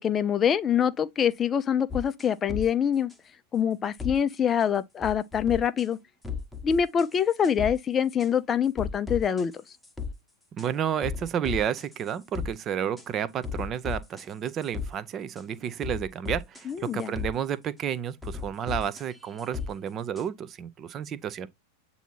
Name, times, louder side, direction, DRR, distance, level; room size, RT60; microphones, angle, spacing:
voice 1, 0.0-3.1 3.5-6.0 6.6-9.5 16.7-17.1, left 8 dB, 25° left, 0.4 m, -25 dB
sound 1, 1.9-2.7 3.1-3.2 4.0-4.2 4.6-4.7 5.0-5.9 6.2-7.2 7.4-7.7 8.2-8.3 8.8-10.1 10.6-10.7 11.0-12.5 13.0-13.1 13.4-14.9 15.4-15.5 15.8-17.3 18.2-19.7 20.2-20.3, left 5 dB, 5° left, 1.0 m, -35 dB
voice 2, 10.5-21.5, right 9 dB, 30° right, 0.5 m, -31 dB
7.9 x 2.7 x 4.3 m
figure-of-eight pair, 90°, 0 cm